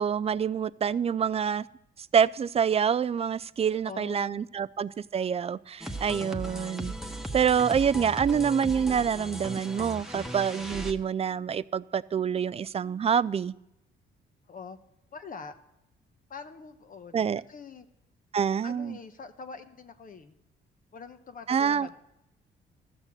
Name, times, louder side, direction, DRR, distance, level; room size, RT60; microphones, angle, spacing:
voice 1, 0.0-1.6 2.1-6.9 7.3-13.5 17.1-17.4 18.3-19.0 21.5-22.0, right 7 dB, 30° right, 0.4 m, -26 dB
voice 2, 3.8-4.5 14.5-14.8 15.1-15.6 16.3-17.9 18.6-20.3 20.9-22.0, left 5 dB, 45° left, 1.0 m, -44 dB
sound 1, 5.8-10.9, right 1 dB, ahead, 1.2 m, -37 dB
13.5 x 6.6 x 7.4 m
cardioid pair, 90°, 20 cm